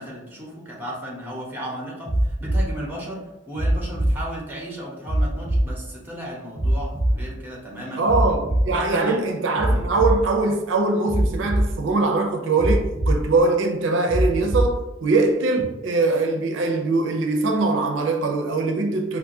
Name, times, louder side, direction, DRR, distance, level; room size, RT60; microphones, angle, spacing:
voice 1, 0.0-8.0 8.7-9.2 9.6-9.9, right 1 dB, 10° right, 0.9 m, -34 dB
sound 1, 2.0-2.6 3.5-4.1 5.0-5.6 6.5-7.1 8.0-8.6 9.5-10.1 11.0-11.6 12.6-13.1 14.1-14.7 15.6-15.7, right 1 dB, 45° left, 1.4 m, -21 dB
voice 2, 8.0-19.2, right 3 dB, 80° right, 0.5 m, -22 dB
4.6 x 2.5 x 2.7 m
head